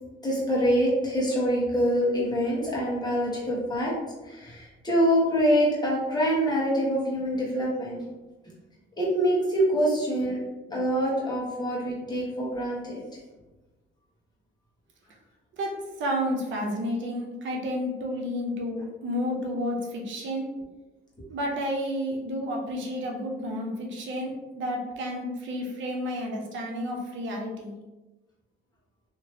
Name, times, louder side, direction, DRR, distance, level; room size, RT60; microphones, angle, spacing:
voice 1, 0.2-3.9 4.2-8.0 9.0-10.4 10.7-13.0, equal, 20° left, -5 dB, 1.3 m, -25 dB
voice 2, 15.6-20.5 21.3-27.7, equal, 70° right, 0 dB, 0.7 m, -31 dB
2.9 x 2.9 x 2.8 m, 1.1 s
cardioid pair, 90°, 20 cm